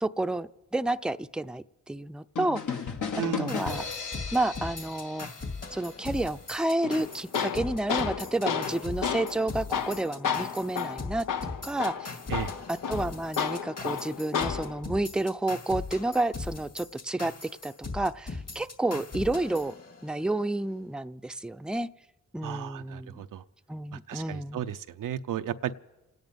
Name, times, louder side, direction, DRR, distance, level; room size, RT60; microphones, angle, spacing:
voice 1, 0.0-2.8 3.4-3.8 4.3-5.3 5.7-11.3 11.6-12.1 12.7-19.7 20.0-21.9 22.3-23.2 23.7-24.6, right 2 dB, 5° right, 10 dB, 0.5 m, -30 dB
sound 1, 2.4-6.1, left 6 dB, 70° left, 1.4 m, -35 dB
voice 2, 3.1-3.6 12.3-12.5 22.4-23.4 23.9-25.7, right 10 dB, 85° right, 10 dB, 0.6 m, -34 dB
sound 2, 3.5-20.4, left 3 dB, 50° left, 2.5 m, -39 dB
Tools, 6.8-14.8, left 7 dB, 85° left, 0.8 m, -32 dB
28.0 x 9.6 x 5.3 m, 1.1 s
supercardioid pair, 40°, 32 cm